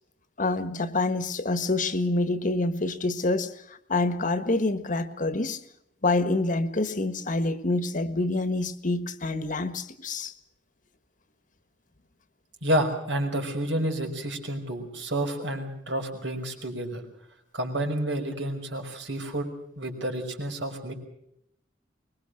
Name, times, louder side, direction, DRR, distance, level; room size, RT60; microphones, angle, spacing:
voice 1, 0.4-3.5 3.9-5.6 6.0-10.3, left 2 dB, 45° left, 11 dB, 1.5 m, -27 dB
voice 2, 12.6-17.0 17.5-19.5 19.8-20.9, right 1 dB, 75° right, 4 dB, 5.6 m, -29 dB
24.0 x 21.5 x 6.5 m, 0.79 s
head